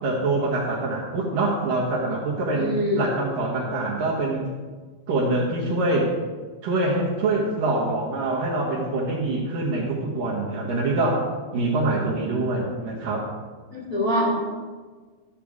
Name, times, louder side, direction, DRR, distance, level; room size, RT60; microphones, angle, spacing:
voice 1, 0.0-4.5 5.1-6.1 6.6-11.2 11.5-13.3, right 2 dB, 70° right, -4 dB, 2.2 m, -25 dB
voice 2, 2.5-3.1 13.7-14.3, equal, 75° left, -7 dB, 0.8 m, -24 dB
13.5 x 6.9 x 3.6 m, 1.4 s
omnidirectional pair, 5.4 m